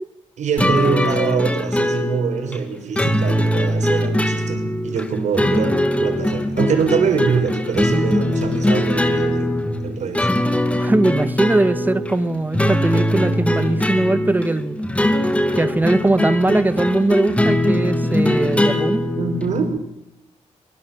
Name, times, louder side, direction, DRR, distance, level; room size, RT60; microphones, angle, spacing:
voice 1, 0.4-10.3 19.2-19.7, right 6 dB, 70° right, 5 dB, 5.6 m, -24 dB
sound 1, 0.6-19.8, left 1 dB, 10° left, 2.4 m, -21 dB
voice 2, 10.8-14.8 15.5-19.1, right 2 dB, 15° right, 13 dB, 1.8 m, -20 dB
23.0 x 22.5 x 7.4 m, 0.81 s
cardioid pair, 100°, 12 cm